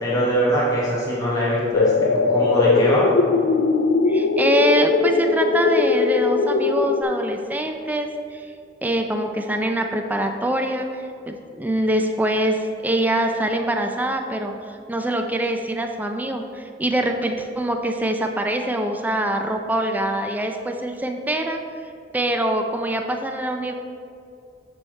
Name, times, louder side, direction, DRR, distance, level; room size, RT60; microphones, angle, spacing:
voice 1, 0.0-3.1, equal, 20° left, -7 dB, 1.1 m, -22 dB
sound 1, 1.7-7.0, left 4 dB, 85° left, 0.4 m, -20 dB
voice 2, 4.1-8.4 8.8-14.5 14.9-21.6 22.1-23.7, right 1 dB, 10° right, 4 dB, 0.4 m, -24 dB
6.3 x 5.5 x 4.4 m, 2.4 s
head